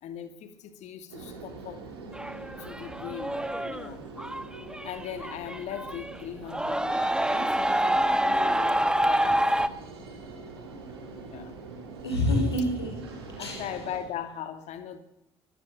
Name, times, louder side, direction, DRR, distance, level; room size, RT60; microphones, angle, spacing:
voice 1, 0.0-1.8 2.6-4.0 4.6-9.6 11.1-11.6 13.4-15.0, left 9 dB, 60° left, 2.6 m, -39 dB
sound 1, 1.1-14.0, right 3 dB, 80° right, 4.0 m, -44 dB
sound 2, 2.2-6.2 6.5-9.7, right 1 dB, 5° right, 1.6 m, -27 dB
voice 2, 12.0-13.6, left 1 dB, 85° left, 5.5 m, -28 dB
24.0 x 18.0 x 7.8 m
figure-of-eight pair, 45°, 13 cm